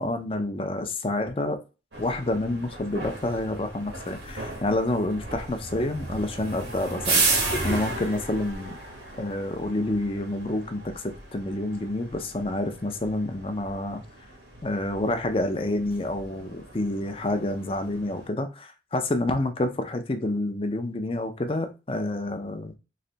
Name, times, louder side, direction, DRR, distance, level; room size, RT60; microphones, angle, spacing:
voice 1, 0.0-1.6 2.0-8.8 9.2-14.0 14.6-22.7, left 1 dB, 30° left, 7 dB, 0.5 m, -28 dB
sound 1, 1.9-18.3, right 3 dB, 85° right, 1.4 m, -34 dB
3.2 x 2.6 x 3.9 m, 0.30 s
head